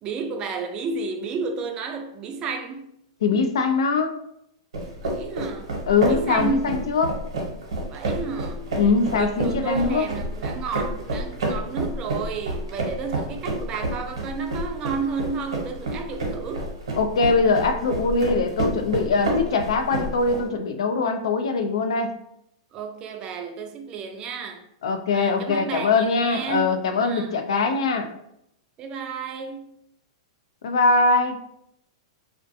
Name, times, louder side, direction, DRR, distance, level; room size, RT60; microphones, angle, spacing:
voice 1, 0.0-2.9 5.0-5.7 6.1-6.7 7.9-8.7 9.1-16.7 22.7-24.7 25.1-27.3 28.8-29.7, right 5 dB, 30° right, 0.3 m, -32 dB
voice 2, 3.2-4.2 5.9-7.2 8.8-10.1 17.0-22.2 24.8-28.1 30.6-31.4, left 4 dB, 80° left, 0.3 m, -22 dB
sound 1, 4.7-20.4, right 1 dB, 85° right, 0.8 m, -29 dB
2.3 x 2.2 x 2.6 m
hypercardioid pair, 130°, 3 cm